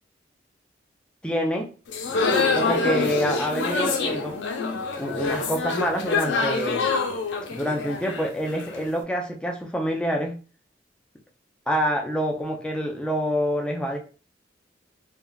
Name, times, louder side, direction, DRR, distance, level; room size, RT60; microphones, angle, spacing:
voice 1, 1.2-1.7 2.5-4.4 5.0-6.9 7.5-10.4 11.7-14.0, equal, 5° left, 1 dB, 0.4 m, -27 dB
sound 1, 1.9-8.9, left 4 dB, 80° left, 0.5 m, -26 dB
3.6 x 2.2 x 2.2 m, 0.38 s
head